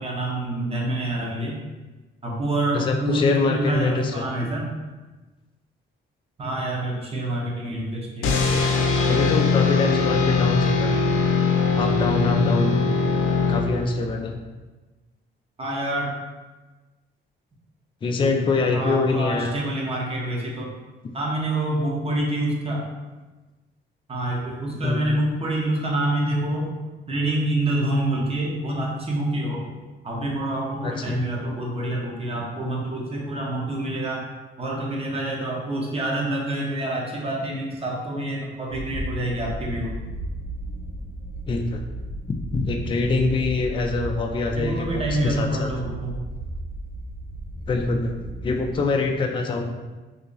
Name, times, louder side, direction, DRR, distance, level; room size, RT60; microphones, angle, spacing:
voice 1, 0.0-1.6 2.2-4.7 6.4-8.3 15.6-16.1 18.7-20.7 21.1-22.8 24.1-26.7 27.1-29.6 30.0-34.2 34.6-39.9 44.6-46.2, right 1 dB, 30° right, -2 dB, 0.9 m, -27 dB
voice 2, 2.7-4.3 9.0-10.9 11.8-12.8 13.5-14.4 18.0-19.5 24.8-25.0 30.8-31.2 41.5-41.8 42.5-45.7 47.7-48.1 48.4-49.7, left 3 dB, 25° left, 3 dB, 0.4 m, -24 dB
sound 1, 8.2-14.1, left 4 dB, 85° left, 0.5 m, -21 dB
sound 2, 38.7-48.8, right 1 dB, 90° right, 0.8 m, -34 dB
2.8 x 2.7 x 3.8 m, 1.2 s
cardioid pair, 90°, 20 cm